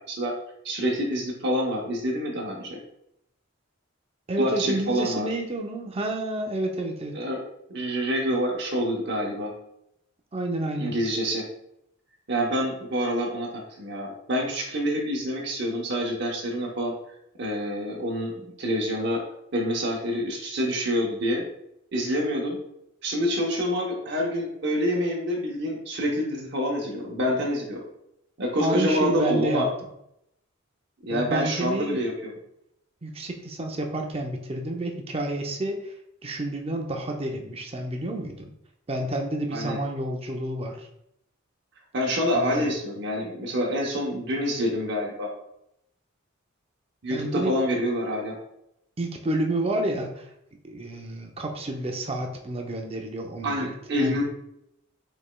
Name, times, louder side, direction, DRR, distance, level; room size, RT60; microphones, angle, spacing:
voice 1, 0.6-2.8 4.4-5.3 7.1-7.4 7.7-9.5 10.8-11.5 12.3-16.9 17.4-18.3 18.6-19.2 19.5-21.5 21.9-22.6 23.0-27.8 28.4-29.7 31.0-32.3 39.5-39.8 41.9-45.3 47.0-48.4 53.4-54.2, equal, 55° right, -2 dB, 0.8 m, -27 dB
voice 2, 4.3-7.1 10.3-11.0 28.6-29.6 31.1-32.0 33.0-35.9 36.2-38.5 38.9-40.9 42.4-42.7 47.1-47.5 49.0-50.3 50.6-53.7 54.0-54.2, right 1 dB, 30° right, 2 dB, 0.6 m, -29 dB
5.1 x 4.3 x 2.2 m, 0.78 s
head